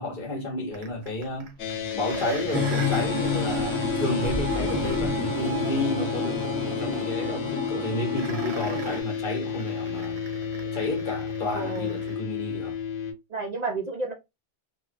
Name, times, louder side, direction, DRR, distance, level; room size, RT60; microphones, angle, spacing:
voice 1, 0.0-1.5 1.9-10.3 10.7-12.7, left 2 dB, 50° left, 0.9 m, -32 dB
sound 1, 0.7-12.2 12.6-12.7, right 5 dB, 70° right, 0.9 m, -39 dB
sound 2, 1.6-13.1, left 7 dB, 85° left, 0.9 m, -32 dB
sound 3, 2.5-9.0, left 3 dB, 10° right, 0.6 m, -30 dB
voice 2, 11.5-11.9 13.3-14.1, right 3 dB, 55° right, 0.5 m, -31 dB
2.8 x 2.1 x 2.4 m
omnidirectional pair, 1.2 m